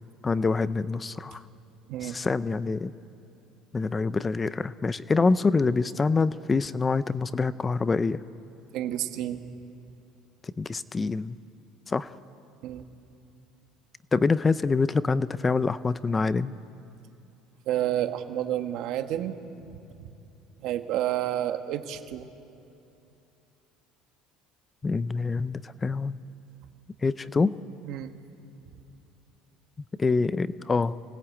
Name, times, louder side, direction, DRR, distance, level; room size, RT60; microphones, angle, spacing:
voice 1, 0.2-1.4 2.0-2.9 3.7-8.2 10.4-11.4 11.9-12.1 14.1-16.5 24.8-26.2 27.0-27.6 30.0-30.9, left 4 dB, 20° left, 15 dB, 0.5 m, -25 dB
voice 2, 8.7-9.4 12.6-12.8 17.7-19.3 19.7-19.8 20.6-22.3 27.8-28.1, right 12 dB, 60° right, 7 dB, 1.6 m, -30 dB
26.5 x 19.0 x 8.7 m, 2.8 s
cardioid pair, 135°, 0 cm